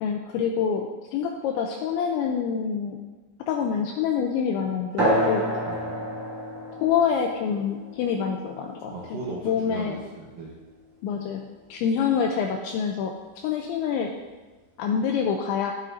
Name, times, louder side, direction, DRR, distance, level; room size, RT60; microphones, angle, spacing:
voice 1, 0.0-3.0 3.5-5.5 6.8-9.2 9.4-10.0 11.0-14.1 14.8-15.7, left 7 dB, 90° left, 2 dB, 2.6 m, -26 dB
sound 1, 5.0-10.0, equal, 50° right, 1.8 m, -29 dB
voice 2, 5.6-6.2 8.9-10.5, right 2 dB, 85° right, -3 dB, 2.0 m, -37 dB
13.5 x 7.5 x 2.6 m, 1.3 s
omnidirectional pair, 5.8 m